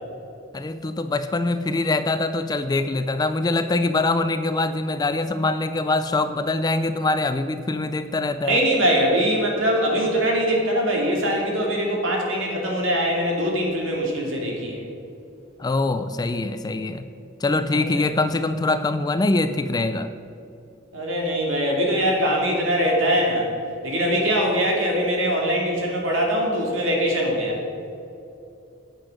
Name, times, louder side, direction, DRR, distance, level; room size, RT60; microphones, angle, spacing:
voice 1, 0.5-8.6 15.6-17.0 17.4-20.1, left 2 dB, 20° left, 11 dB, 0.3 m, -23 dB
voice 2, 8.4-14.8 17.7-18.1 20.9-23.5 23.8-27.6, equal, 65° right, -1 dB, 2.5 m, -22 dB
8.9 x 8.1 x 6.3 m, 2.7 s
head